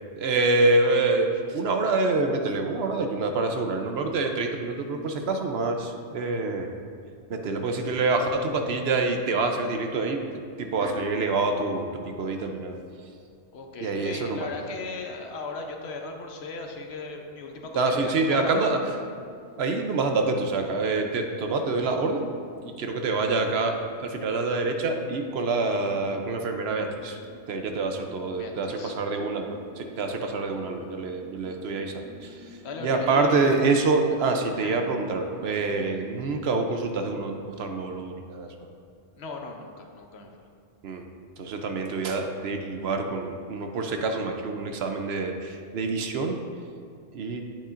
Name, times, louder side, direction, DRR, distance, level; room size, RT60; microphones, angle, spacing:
voice 1, 0.1-6.7 7.3-12.8 13.8-14.5 17.7-18.8 19.6-22.3 22.6-27.2 27.5-38.5 40.8-41.1 41.4-46.4 47.1-47.4, right 3 dB, 70° right, 4 dB, 0.9 m, -26 dB
voice 2, 13.5-18.7 28.4-29.0 32.6-33.6 34.6-34.8 39.2-40.4, left 3 dB, 70° left, 3 dB, 1.0 m, -37 dB
sound 1, 17.5-36.4, left 1 dB, ahead, 0.5 m, -50 dB
8.6 x 8.3 x 2.5 m, 2.3 s
omnidirectional pair, 1.1 m